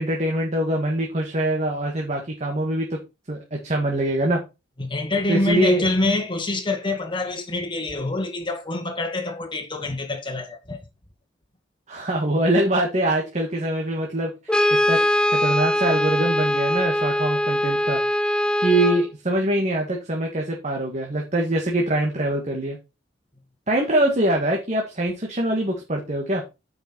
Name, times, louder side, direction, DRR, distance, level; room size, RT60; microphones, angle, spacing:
voice 1, 0.0-3.0 3.3-4.4 5.3-5.8 11.9-14.3 14.9-15.0 15.3-18.0 18.6-22.8 23.7-26.4, right 1 dB, 40° right, 1.8 m, -23 dB
voice 2, 4.8-10.8, left 2 dB, 25° left, 1.8 m, -26 dB
Brass instrument, 14.5-19.1, equal, 5° left, 0.4 m, -21 dB
9.2 x 5.7 x 4.4 m
head